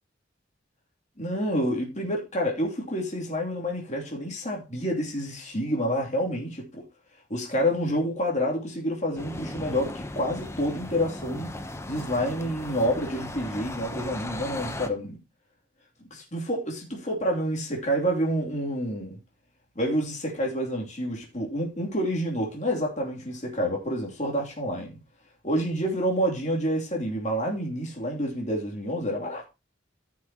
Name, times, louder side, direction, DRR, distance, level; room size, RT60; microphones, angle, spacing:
voice 1, 1.2-6.7 7.3-11.5 11.9-15.2 16.1-19.2 19.7-25.0 25.4-29.5, equal, 40° left, 2.9 m, -28 dB
sound 1, 9.2-14.9, left 1 dB, 15° left, 0.8 m, -37 dB
14.5 x 6.1 x 2.9 m
head